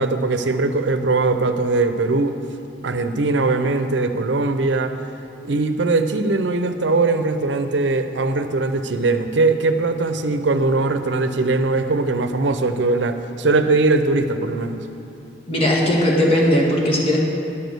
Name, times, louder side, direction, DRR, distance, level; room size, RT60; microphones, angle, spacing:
voice 1, 0.0-2.4 2.8-4.9 5.4-14.8, right 3 dB, 75° right, 8 dB, 0.6 m, -20 dB
voice 2, 15.5-17.2, left 1 dB, 30° left, -3 dB, 1.7 m, -18 dB
11.0 x 6.2 x 6.7 m, 2.8 s
head